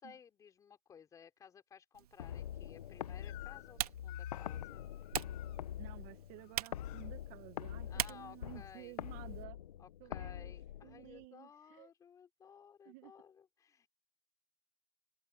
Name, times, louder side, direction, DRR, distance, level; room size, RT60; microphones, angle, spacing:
voice 1, 0.0-4.9 7.9-9.0 9.8-13.9, left 7 dB, 15° left, 4.5 m, -57 dB
Typing, 1.9-9.4, right 12 dB, 80° right, 1.9 m, -45 dB
sound 1, 2.2-11.2, left 10 dB, 85° left, 0.9 m, -45 dB
Crying sobbing / Screech, 3.2-3.8 4.1-5.6 6.4-7.1, left 27 dB, 40° left, 6.3 m, -55 dB
voice 2, 5.8-9.6 10.0-10.5 10.8-11.9 12.8-13.1, right 21 dB, 35° right, 1.5 m, -53 dB
open air
hypercardioid pair, 150°, 19 cm